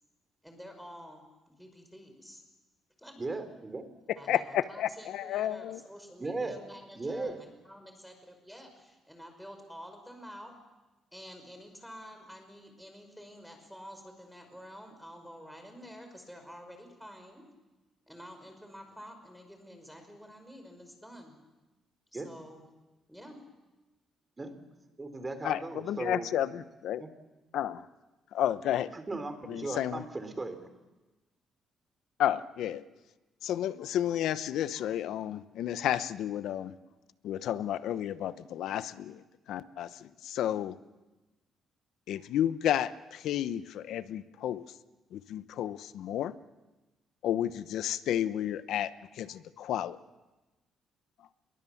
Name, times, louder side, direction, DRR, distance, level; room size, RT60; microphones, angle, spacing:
voice 1, 0.4-2.4 3.0-3.2 4.2-10.5 11.1-17.5 18.1-21.4 22.1-22.6 23.1-23.4, equal, ahead, 5 dB, 5.5 m, -49 dB
voice 2, 3.2-3.9 6.2-6.6 7.0-7.4 22.1-22.3 24.4-24.6 25.0-26.2 27.0-27.1 28.9-30.7, right 3 dB, 25° right, 9 dB, 3.6 m, -37 dB
voice 3, 4.3-5.8 25.4-27.0 27.5-27.9 28.3-28.9 29.5-30.0 32.2-32.8 33.4-36.8 37.2-39.2 39.5-40.8 42.1-44.6 45.1-46.3 47.2-50.0, left 11 dB, 80° left, 14 dB, 0.9 m, -32 dB
27.5 x 22.0 x 7.2 m, 1.1 s
cardioid pair, 90°, 0 cm